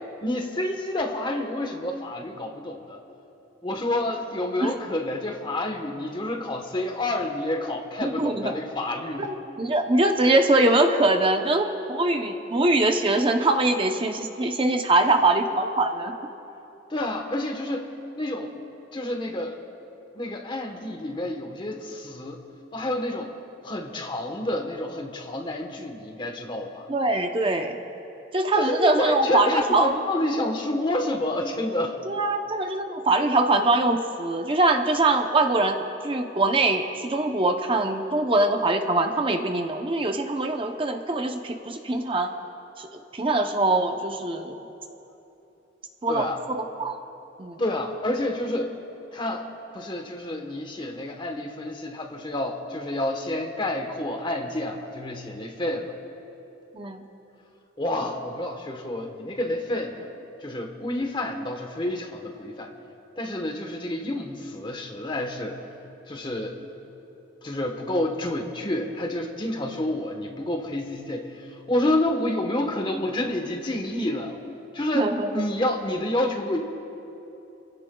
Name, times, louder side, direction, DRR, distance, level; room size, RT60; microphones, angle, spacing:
voice 1, 0.2-3.0 3.6-9.3 15.0-15.3 16.9-17.9 18.2-18.5 18.9-19.6 20.1-22.4 22.7-23.3 23.6-26.9 28.5-32.0 46.1-46.4 47.6-48.7 49.1-49.5 49.7-55.9 57.8-60.1 60.4-62.7 63.2-65.6 66.1-66.6 67.4-74.4 74.7-76.6, left 1 dB, 25° left, 3 dB, 1.1 m, -29 dB
voice 2, 8.0-8.5 9.2-16.2 26.9-27.8 28.3-29.9 32.1-42.3 42.8-44.6 46.0-46.9 47.4-47.6 56.7-57.0 74.9-75.4, right 2 dB, 30° right, 4 dB, 0.7 m, -23 dB
28.0 x 16.0 x 2.3 m, 2.9 s
head